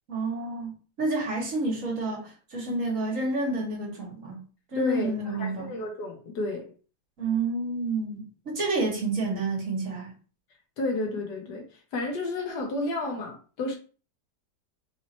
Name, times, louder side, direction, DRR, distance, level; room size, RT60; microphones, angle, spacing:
voice 1, 0.1-4.4 4.7-5.8 7.2-10.1, right 2 dB, 50° right, 1.7 m, -29 dB
voice 2, 4.7-6.7 10.8-11.7 11.9-13.7, left 2 dB, 70° left, 1.6 m, -31 dB
4.1 x 2.7 x 4.3 m
omnidirectional pair, 1.9 m